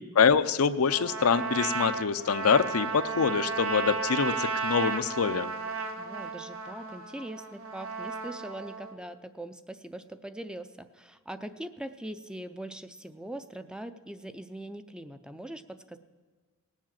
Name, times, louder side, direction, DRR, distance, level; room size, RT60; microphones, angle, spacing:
voice 1, 0.2-5.5, left 6 dB, 80° left, 11 dB, 0.6 m, -25 dB
Trumpet, 0.9-8.9, right 4 dB, 70° right, 1.2 m, -34 dB
voice 2, 6.0-16.0, right 1 dB, 5° right, 10 dB, 0.4 m, -41 dB
18.5 x 7.3 x 7.4 m, 1.4 s
head